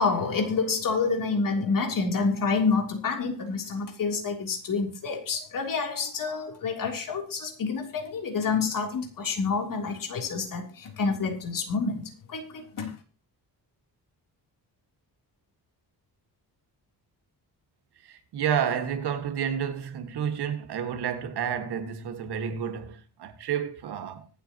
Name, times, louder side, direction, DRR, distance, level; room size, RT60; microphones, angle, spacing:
voice 1, 0.0-12.0 12.3-12.9, left 4 dB, 55° left, 3.5 m, -28 dB
voice 2, 18.0-24.3, right 8 dB, 75° right, 2.0 m, -30 dB
24.5 x 8.4 x 3.0 m
wide cardioid pair, 170°, 39 cm